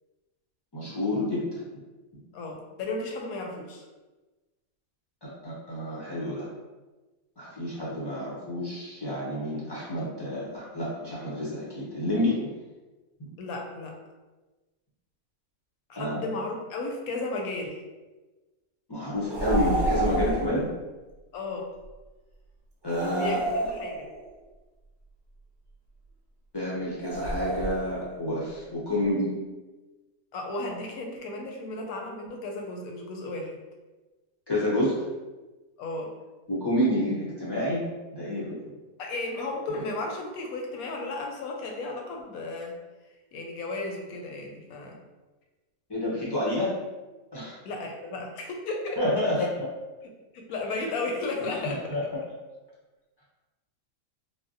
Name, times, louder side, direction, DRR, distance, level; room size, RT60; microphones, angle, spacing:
voice 1, 0.7-1.6 5.2-6.5 7.4-12.5 13.2-13.3 16.0-16.2 18.9-20.7 22.8-23.4 26.5-29.4 34.5-35.1 36.5-37.9 38.1-38.8 45.9-46.8 47.3-47.6 49.0-49.7 51.4-52.0, left 1 dB, 35° left, -7 dB, 0.4 m, -29 dB
voice 2, 2.3-3.8 13.4-14.0 15.9-17.8 21.3-21.7 23.1-24.1 30.3-33.5 35.8-36.1 39.0-42.8 43.3-45.0 47.6-49.1 50.3-52.1, left 2 dB, 85° left, 2 dB, 1.0 m, -34 dB
sound 1, 19.3-20.6 22.9-24.3 27.0-28.1, right 1 dB, 45° right, 0.8 m, -29 dB
3.3 x 2.0 x 2.5 m, 1.2 s
omnidirectional pair, 1.5 m